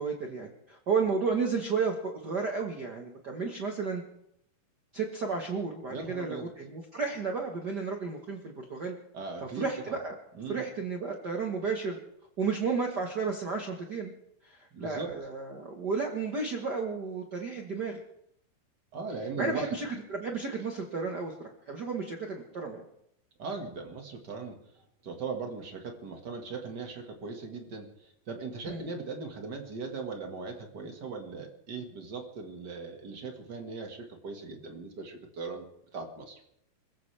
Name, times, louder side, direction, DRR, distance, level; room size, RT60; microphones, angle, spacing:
voice 1, 0.0-4.0 4.9-8.9 9.5-10.1 10.5-12.0 12.4-14.1 14.4-18.0 19.4-22.8 28.7-28.9, right 4 dB, 80° right, 2 dB, 0.9 m, -32 dB
voice 2, 5.9-6.5 9.1-9.9 10.3-10.6 14.7-15.2 18.9-19.8 23.4-36.4, right 4 dB, 40° right, 3 dB, 1.6 m, -39 dB
26.0 x 15.5 x 3.4 m, 0.74 s
omnidirectional pair, 4.2 m